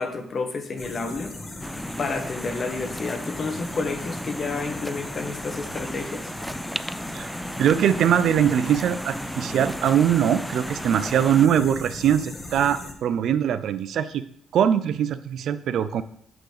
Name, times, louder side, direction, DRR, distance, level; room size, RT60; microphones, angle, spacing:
voice 1, 0.0-1.3 2.0-6.3, left 4 dB, 45° left, 5 dB, 1.5 m, -30 dB
sound 1, 0.8-12.9, left 2 dB, 30° left, 1.6 m, -38 dB
Waves surf, 1.6-11.5, equal, ahead, 0.3 m, -35 dB
voice 2, 7.6-14.2 14.5-16.0, right 9 dB, 70° right, 12 dB, 0.6 m, -22 dB
8.6 x 3.9 x 6.7 m, 0.63 s
cardioid pair, 90°, 0 cm